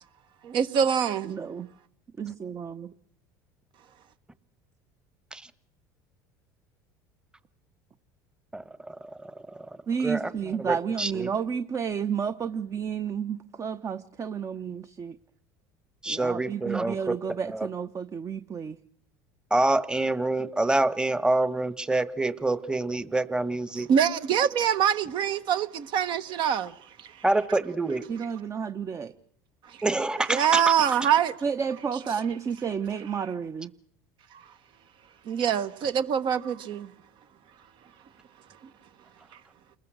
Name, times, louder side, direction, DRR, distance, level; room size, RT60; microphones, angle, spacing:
voice 1, 0.5-1.3 23.8-26.7 27.0-27.1 30.3-31.3 35.3-36.9, right 8 dB, 55° right, 1.3 m, -24 dB
voice 2, 1.2-1.7 2.2-2.9 9.9-15.2 16.1-18.8 28.1-29.1 31.4-33.7, right 6 dB, 35° right, 1.0 m, -31 dB
voice 3, 8.5-9.7 10.0-10.3 10.6-11.3 16.0-17.2 17.5-17.7 19.5-23.9 27.2-28.0 29.8-30.6, right 2 dB, 10° right, 1.3 m, -27 dB
29.0 x 21.0 x 6.3 m
supercardioid pair, 90°, 10 cm